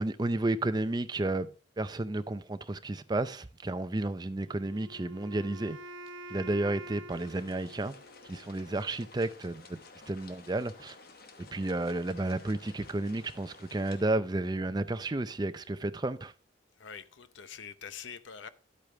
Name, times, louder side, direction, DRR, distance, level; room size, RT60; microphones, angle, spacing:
voice 1, 0.0-5.8 6.3-8.0 8.2-9.8 10.1-11.0 11.4-16.3, right 2 dB, 20° right, 0.4 m, -32 dB
Wind instrument woodwind instrument, 4.5-8.5, right 1 dB, 75° right, 0.7 m, -47 dB
sound 1, 7.1-14.0, left 4 dB, 50° left, 1.0 m, -53 dB
voice 2, 16.8-18.5, left 7 dB, 70° left, 0.7 m, -45 dB
11.0 x 8.4 x 3.3 m
head